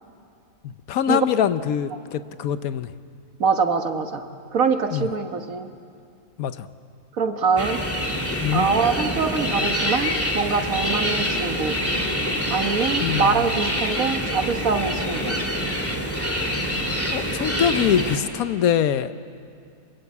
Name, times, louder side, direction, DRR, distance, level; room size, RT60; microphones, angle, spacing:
voice 1, 0.9-2.9 4.9-5.1 6.4-6.7 8.4-8.7 13.0-13.5 17.1-19.2, left 9 dB, 70° left, 12 dB, 1.2 m, -23 dB
voice 2, 3.4-4.2 4.5-5.7 7.2-7.8 8.5-11.8 12.5-15.4, right 5 dB, 65° right, 7 dB, 1.7 m, -24 dB
sound 1, 7.6-18.2, equal, 10° left, 2.3 m, -26 dB
26.0 x 22.5 x 8.4 m, 2.4 s
omnidirectional pair, 1.6 m